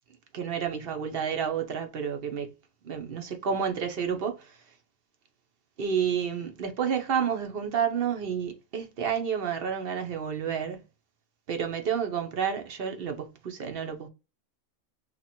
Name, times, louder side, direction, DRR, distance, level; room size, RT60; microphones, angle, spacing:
voice 1, 0.3-2.5 2.8-4.6 5.8-10.8 11.5-14.1, right 7 dB, 50° right, 0.8 m, -30 dB
2.8 x 2.5 x 4.2 m
omnidirectional pair, 1.4 m